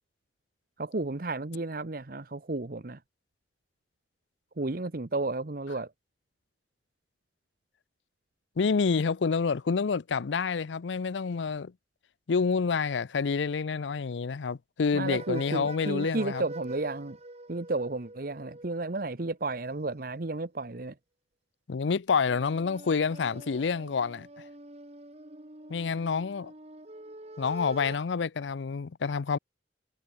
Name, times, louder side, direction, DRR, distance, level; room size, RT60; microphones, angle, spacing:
voice 1, 0.8-3.0 4.6-5.9 14.9-17.2 17.5-20.9, right 2 dB, 55° right, 1.0 m, -33 dB
voice 2, 8.6-11.7 12.3-16.4 21.7-24.3 25.7-26.5 27.4-29.4, left 5 dB, 90° left, 0.5 m, -28 dB
sound 1, 15.0-18.9 22.3-28.0, right 1 dB, 35° right, 2.2 m, -45 dB
head